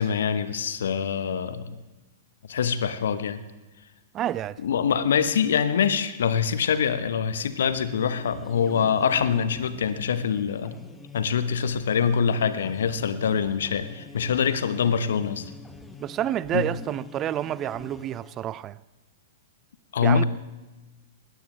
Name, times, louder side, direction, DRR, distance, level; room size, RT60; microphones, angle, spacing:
voice 1, 0.0-1.8 2.5-3.4 4.6-10.8 11.1-15.5 16.5-16.7 19.9-20.2, left 7 dB, 65° left, 1.0 m, -24 dB
voice 2, 4.1-4.6 16.0-18.8 20.0-20.2, right 12 dB, 30° right, 0.4 m, -29 dB
sound 1, 7.5-18.5, left 3 dB, 10° left, 1.1 m, -45 dB
20.0 x 14.0 x 3.4 m
figure-of-eight pair, 105°, 0 cm